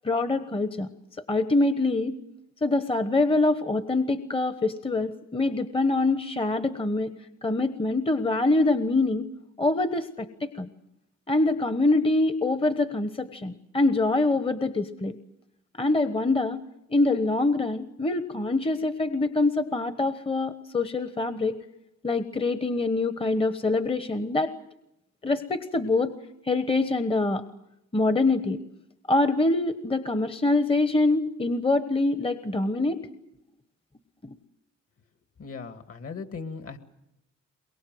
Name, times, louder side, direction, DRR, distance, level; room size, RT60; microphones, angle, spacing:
voice 1, 0.0-0.9 1.3-2.2 2.6-7.1 7.4-9.3 9.6-10.7 11.3-15.2 15.8-16.6 16.9-21.6 22.0-24.5 25.2-26.1 26.4-27.4 27.9-28.6 29.1-33.0 34.2-34.3, left 2 dB, 20° left, 11 dB, 1.2 m, -25 dB
voice 2, 35.4-36.8, left 4 dB, 50° left, 9 dB, 2.4 m, -38 dB
23.0 x 22.5 x 7.8 m, 0.83 s
cardioid pair, 90°, 30 cm